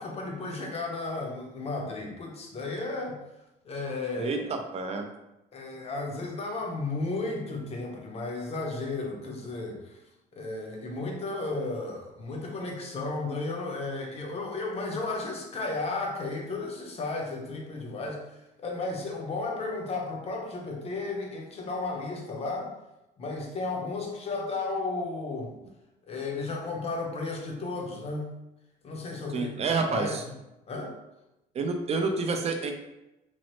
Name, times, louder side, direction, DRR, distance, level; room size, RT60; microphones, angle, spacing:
voice 1, 0.0-3.2 3.6-4.4 5.5-10.0 10.3-22.7 23.2-25.5 26.1-28.3 28.8-30.2 30.7-31.0, left 3 dB, 35° left, 0 dB, 0.7 m, -34 dB
voice 2, 4.2-5.1 29.3-30.2 31.5-32.7, right 4 dB, 40° right, 4 dB, 0.4 m, -29 dB
3.0 x 2.0 x 3.0 m, 0.93 s
cardioid pair, 110°, 17 cm